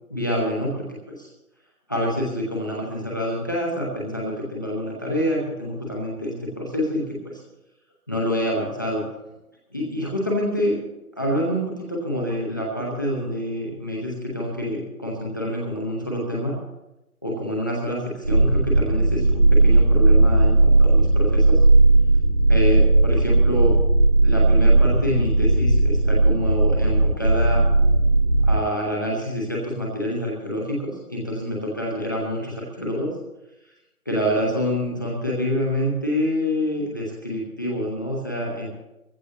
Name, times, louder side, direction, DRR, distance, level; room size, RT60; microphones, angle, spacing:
voice 1, 0.1-1.3 1.9-7.4 8.1-9.0 9.7-10.8 11.2-16.6 17.2-21.6 22.5-23.7 24.2-27.7 28.4-33.1 34.1-38.7, equal, 15° left, -3 dB, 0.9 m, -27 dB
sound 1, 18.2-28.6, right 2 dB, 85° right, 3.7 m, -17 dB
19.5 x 15.0 x 2.9 m, 0.95 s
figure-of-eight pair, 155°, 45 cm